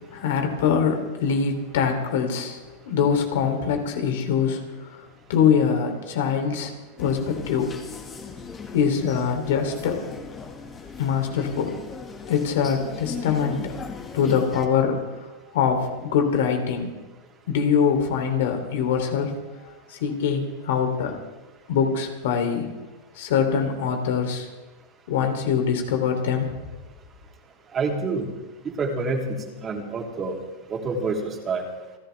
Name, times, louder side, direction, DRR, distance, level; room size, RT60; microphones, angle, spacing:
voice 1, 0.1-7.8 8.7-10.1 11.0-11.7 12.3-13.7 14.1-16.9 17.5-19.4 19.6-21.2 21.7-22.7 23.1-24.5 25.1-26.5, left 7 dB, 70° left, 4 dB, 3.4 m, -24 dB
sound 1, 7.0-14.7, left 5 dB, 25° left, 2.1 m, -38 dB
voice 2, 27.7-28.3 28.6-30.4 30.7-31.6, right 3 dB, 25° right, 1 dB, 3.3 m, -27 dB
29.0 x 11.5 x 3.6 m, 1.1 s
hypercardioid pair, 120°, 0 cm